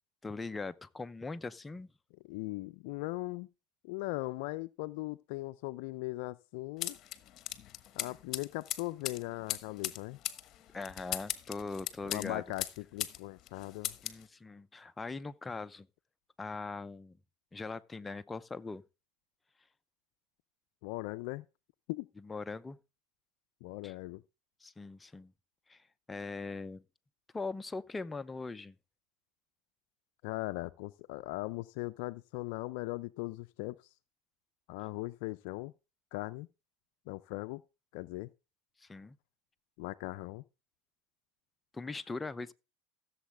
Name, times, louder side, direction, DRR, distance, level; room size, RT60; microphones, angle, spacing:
voice 1, 0.2-1.9 10.7-12.4 14.0-15.9 16.4-17.2 17.5-18.8 22.2-22.8 23.8-23.9 24.6-25.3 25.7-26.8 27.3-28.8 38.8-39.2 41.7-42.5, left 3 dB, 15° left, 0.6 m, -41 dB
voice 2, 2.3-3.5 3.8-7.0 8.0-10.2 12.0-14.0 20.8-21.4 21.9-22.1 23.6-24.2 30.2-33.9 34.7-35.7 36.1-36.5 37.1-37.6 37.9-38.3 39.8-40.4, left 20 dB, 70° left, 0.4 m, -39 dB
sound 1, 6.8-13.2 13.5-14.2, left 13 dB, 45° left, 1.1 m, -39 dB
15.5 x 7.3 x 3.4 m
supercardioid pair, 100°, 0 cm